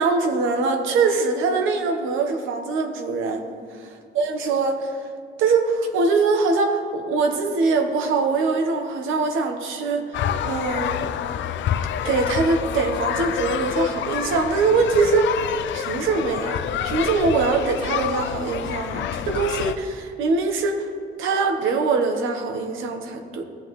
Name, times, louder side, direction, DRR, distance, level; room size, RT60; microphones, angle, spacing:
voice 1, 0.0-3.4 4.1-5.1 5.4-10.2 10.4-11.1 12.0-15.4 15.7-20.9 21.2-23.4, right 4 dB, 85° right, 4 dB, 1.2 m, -23 dB
sound 1, 10.1-19.7, left 9 dB, 70° left, 0.5 m, -27 dB
15.5 x 7.9 x 3.2 m, 2.2 s
cardioid pair, 90°, 20 cm